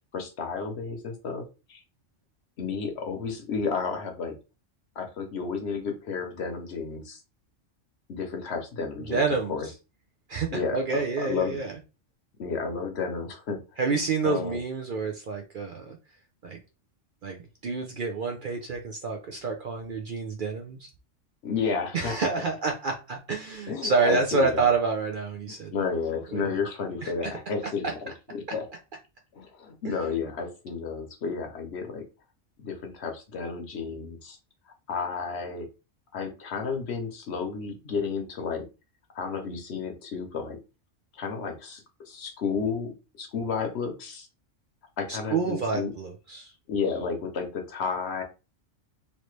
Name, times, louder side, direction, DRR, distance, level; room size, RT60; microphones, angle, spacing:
voice 1, 0.1-1.8 2.6-4.4 5.0-7.2 8.1-9.7 10.5-11.6 12.4-13.6 14.2-14.6 21.4-22.1 23.7-24.7 25.5-28.6 29.3-32.0 32.6-34.4 34.9-35.7 36.1-38.6 39.1-40.6 41.1-44.3 45.0-45.9 46.7-48.2, left 5 dB, 60° left, 4 dB, 1.0 m, -32 dB
voice 2, 9.0-9.5 10.3-11.7 13.8-16.0 16.4-16.6 17.2-20.9 21.9-25.7 26.3-26.5 27.0-27.3 27.8-27.9 29.8-30.1 45.3-46.5, right 4 dB, 55° right, 2 dB, 0.6 m, -28 dB
3.2 x 2.6 x 3.1 m, 0.30 s
omnidirectional pair, 1.3 m